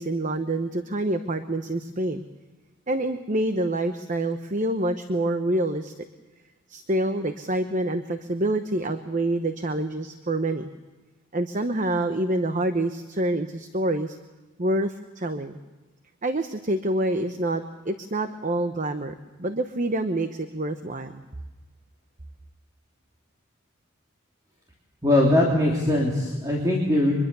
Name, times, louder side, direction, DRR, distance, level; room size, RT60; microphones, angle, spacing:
voice 1, 0.0-2.2 2.9-6.0 6.7-10.7 11.3-14.2 14.6-15.6 16.2-21.2, right 1 dB, 35° right, 8 dB, 1.0 m, -27 dB
voice 2, 25.0-27.1, left 1 dB, 15° right, -3 dB, 3.2 m, -21 dB
24.5 x 22.0 x 6.9 m, 1.2 s
head